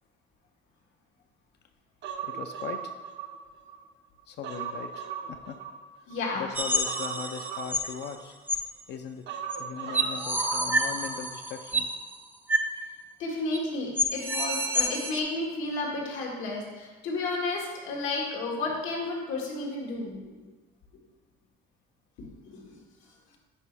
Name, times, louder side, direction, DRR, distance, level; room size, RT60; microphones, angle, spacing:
Human voice, 2.0-3.8 4.2-6.2 6.8-8.6 9.3-11.2 11.5-11.6, right 7 dB, 65° right, 0.8 m, -38 dB
voice 1, 2.2-2.9 4.3-5.6 6.3-8.3 8.9-9.3 9.6-11.9, left 7 dB, 60° left, 6 dB, 0.5 m, -39 dB
voice 2, 6.1-6.4 13.2-20.4 22.4-22.8, left 2 dB, 90° left, -2 dB, 1.7 m, -32 dB
sound 1, 6.5-7.9 8.5-8.6 9.5-9.6 9.9-11.9 12.5-12.7 13.0-13.1 13.5-13.6 14.0-15.2, equal, 10° right, 0.4 m, -28 dB
9.9 x 4.1 x 3.4 m, 1.3 s
cardioid pair, 140°, 20 cm